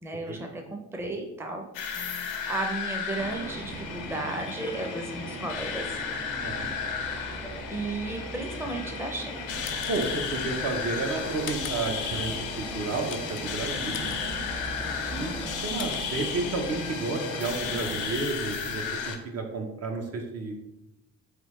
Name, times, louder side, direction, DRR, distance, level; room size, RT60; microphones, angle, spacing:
voice 1, 0.0-1.6 2.0-2.1 2.5-5.9 7.7-9.6 15.2-15.5, right 2 dB, 10° right, 3 dB, 0.5 m, -34 dB
sound 1, 1.7-19.2, left 6 dB, 90° left, 0.6 m, -34 dB
sound 2, 3.2-18.1, right 1 dB, 80° right, 1.3 m, -40 dB
voice 2, 6.4-6.7 9.9-14.2 15.1-20.6, right 3 dB, 55° right, 3 dB, 0.7 m, -32 dB
sound 3, 9.2-16.9, left 7 dB, 45° left, 0.4 m, -45 dB
3.6 x 3.4 x 3.1 m, 0.90 s
cardioid pair, 90°, 30 cm